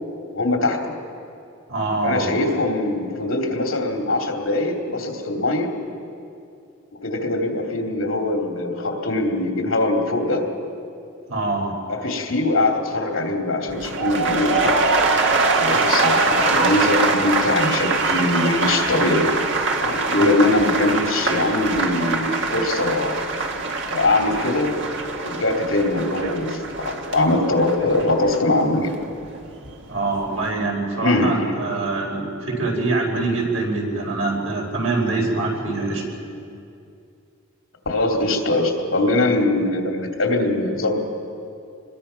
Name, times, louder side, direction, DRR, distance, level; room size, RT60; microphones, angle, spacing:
voice 1, 0.3-0.9 2.0-5.7 7.0-10.5 11.9-14.8 15.6-19.3 19.8-23.1 23.9-24.8 25.2-28.9 31.0-31.5 37.9-41.0, left 2 dB, 80° left, 2 dB, 2.9 m, -22 dB
voice 2, 1.7-2.3 11.3-11.7 20.2-20.6 29.9-36.1, right 3 dB, 85° right, -1 dB, 4.9 m, -24 dB
sound 1, 13.7-29.8 30.1-30.5, right 3 dB, 65° right, 1.8 m, -23 dB
26.0 x 21.5 x 5.8 m, 2.5 s
head